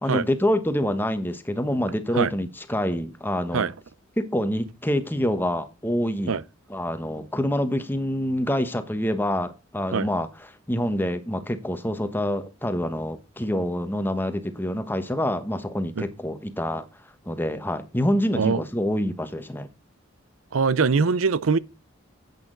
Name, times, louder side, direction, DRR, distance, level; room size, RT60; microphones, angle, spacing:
voice 1, 0.0-3.7 4.2-6.4 6.7-10.3 10.7-16.9 17.3-19.7, equal, 10° left, 1.1 m, -26 dB
voice 2, 20.5-21.6, right 5 dB, 85° right, 0.6 m, -22 dB
10.5 x 8.5 x 3.9 m
head